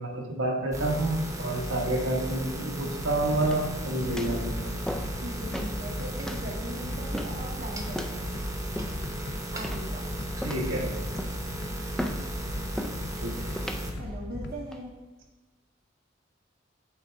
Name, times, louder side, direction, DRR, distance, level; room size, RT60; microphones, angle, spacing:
voice 1, 0.0-4.8 10.4-10.9 13.2-13.5, right 1 dB, 85° right, 0 dB, 1.2 m, -29 dB
sound 1, 0.7-13.9, right 1 dB, 15° right, 0.9 m, -36 dB
sound 2, 3.3-14.5, left 2 dB, 60° left, 0.6 m, -38 dB
sound 3, 3.4-3.8 4.2-4.4 4.9-5.2 5.5-5.8 6.3-6.5 7.1-7.5 7.9-8.2 8.8-9.2 9.6-10.0 10.4-10.8 11.2-11.5 12.0-12.3 12.8-13.0 13.6-13.8 14.5-14.8, equal, 5° left, 0.4 m, -36 dB
voice 2, 5.2-8.4 9.5-10.1 13.9-15.0, right 1 dB, 50° right, 0 dB, 0.8 m, -40 dB
8.0 x 3.6 x 4.5 m, 1.2 s
head